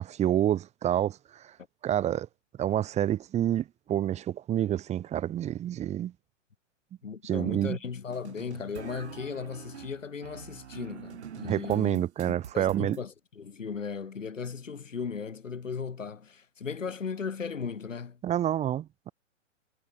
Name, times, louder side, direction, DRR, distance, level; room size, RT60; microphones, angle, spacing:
voice 1, 0.0-1.5 1.8-2.3 2.6-6.1 7.2-7.8 11.4-13.0 18.2-19.1, right 11 dB, 15° right, 2.5 m, -28 dB
voice 2, 7.0-18.2, left 5 dB, 75° left, 2.4 m, -37 dB
sound 1, 8.1-13.0, right 8 dB, 60° right, 4.5 m, -45 dB
figure-of-eight pair, 125°, 38 cm